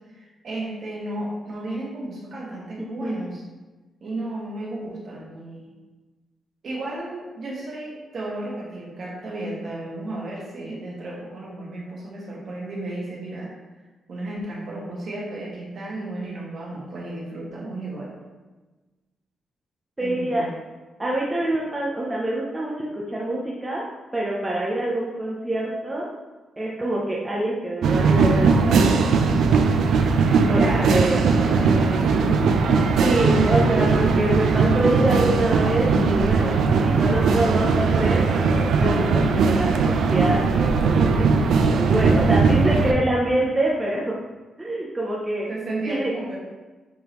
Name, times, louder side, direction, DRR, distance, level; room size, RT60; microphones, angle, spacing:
voice 1, 0.1-3.4 4.0-5.8 6.6-13.5 14.1-18.1 20.0-20.5 30.5-32.6 42.0-42.1 45.5-46.4, right 2 dB, 45° right, -4 dB, 1.6 m, -33 dB
voice 2, 2.8-3.1 20.0-20.5 21.0-26.1 26.6-29.1 30.5-31.2 33.0-41.3 41.8-44.2 44.6-45.5 45.9-46.1, right 1 dB, 10° right, -4 dB, 0.6 m, -25 dB
sound 1, 27.8-42.9, right 4 dB, 85° right, 0.5 m, -19 dB
8.5 x 3.7 x 3.0 m, 1.2 s
wide cardioid pair, 160°, 0 cm